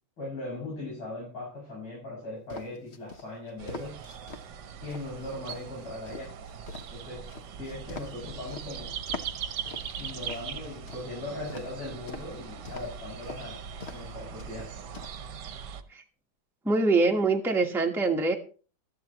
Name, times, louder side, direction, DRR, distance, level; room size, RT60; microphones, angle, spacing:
voice 1, 0.2-4.0 4.8-6.3 6.9-7.3 7.6-9.0 10.0-14.7, left 2 dB, 75° left, -5 dB, 7.7 m, -39 dB
sound 1, 2.5-4.4 4.9-8.7 9.1-11.0 11.5-12.3 12.6-13.0 13.2-13.4 13.8-14.1 14.4-15.1, left 3 dB, 45° left, 1.0 m, -43 dB
sound 2, 3.6-15.8, right 7 dB, 60° right, 1.4 m, -40 dB
voice 2, 16.6-18.3, right 3 dB, ahead, 2 dB, 0.9 m, -24 dB
15.5 x 13.0 x 3.0 m, 0.38 s
omnidirectional pair, 2.2 m